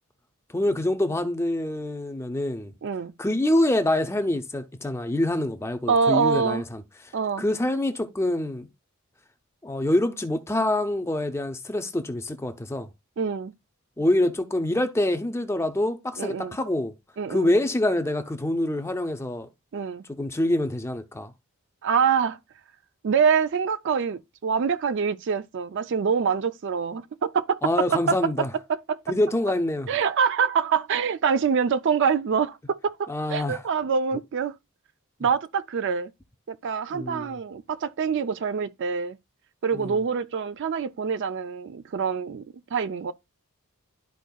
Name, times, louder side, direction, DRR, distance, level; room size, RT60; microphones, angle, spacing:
voice 1, 0.5-2.7 3.2-6.8 7.4-8.7 9.6-12.9 14.0-16.9 17.3-19.5 20.1-21.3 27.6-28.5 29.1-29.9 33.1-33.6 36.9-37.3 39.7-40.0, left 1 dB, 10° left, 0.5 m, -25 dB
voice 2, 2.8-3.1 5.9-6.6 7.1-7.4 13.2-13.5 16.2-16.6 17.2-17.5 19.7-20.0 21.8-22.4 23.0-28.3 28.7-29.0 29.9-34.5 35.2-36.1 36.5-39.2 39.6-43.1, right 6 dB, 55° right, 0.4 m, -25 dB
12.0 x 4.5 x 2.3 m
head